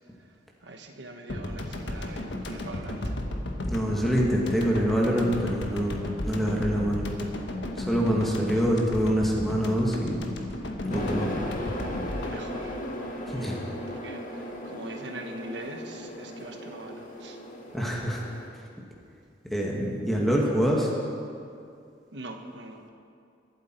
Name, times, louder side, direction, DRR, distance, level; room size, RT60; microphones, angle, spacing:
voice 1, 0.6-3.1 8.5-8.7 12.2-12.8 13.3-17.4 22.1-22.9, right 2 dB, 70° right, 4 dB, 1.3 m, -42 dB
sound 1, 1.3-13.8, left 1 dB, 75° left, 1.3 m, -34 dB
voice 2, 3.6-7.0 7.8-10.2 10.8-11.3 13.3-13.5 17.7-18.2 19.5-20.9, equal, ahead, -2 dB, 1.6 m, -25 dB
sound 2, 10.9-18.5, equal, 45° left, 1.8 m, -37 dB
23.0 x 8.2 x 4.5 m, 2.4 s
head